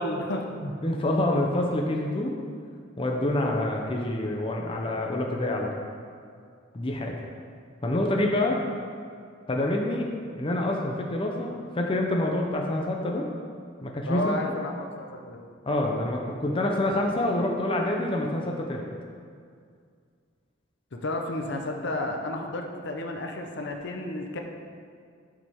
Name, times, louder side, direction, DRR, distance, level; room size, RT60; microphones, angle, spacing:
voice 1, 0.0-0.5 14.1-15.4 20.9-24.4, left 1 dB, 60° left, 3 dB, 0.8 m, -31 dB
voice 2, 0.6-2.4 3.0-5.7 6.7-7.1 7.8-8.6 9.5-10.1 10.4-13.3 13.8-14.4 15.7-18.8, left 1 dB, 25° left, 0 dB, 0.6 m, -27 dB
11.5 x 5.3 x 3.5 m, 2.2 s
head